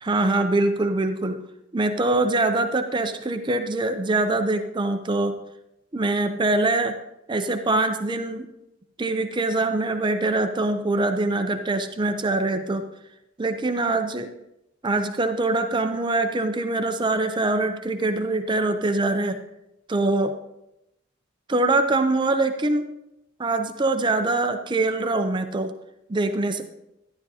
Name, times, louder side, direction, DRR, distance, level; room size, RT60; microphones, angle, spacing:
voice 1, 0.0-1.4 1.7-5.4 5.9-6.9 7.3-8.5 9.0-12.8 13.4-14.3 14.8-19.4 19.9-20.4 21.5-22.9 23.4-25.7 26.1-26.6, right 2 dB, 25° right, 7 dB, 0.5 m, -23 dB
12.0 x 11.0 x 2.8 m, 0.88 s
head